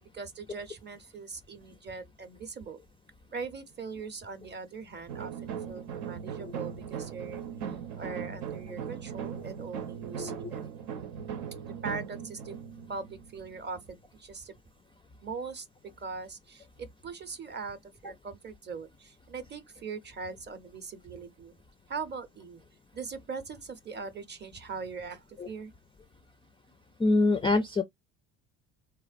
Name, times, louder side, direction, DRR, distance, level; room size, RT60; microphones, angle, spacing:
voice 1, 0.0-2.8 3.3-7.4 8.0-10.6 11.6-12.6 12.9-14.6 15.2-15.7 16.0-21.5 21.9-22.6 22.9-25.7, right 5 dB, 25° right, 0.7 m, -41 dB
sound 1, 5.1-13.9, right 8 dB, 75° right, 0.8 m, -39 dB
voice 2, 27.0-27.8, left 2 dB, 15° left, 0.3 m, -25 dB
3.3 x 2.1 x 2.4 m
supercardioid pair, 75°, 40 cm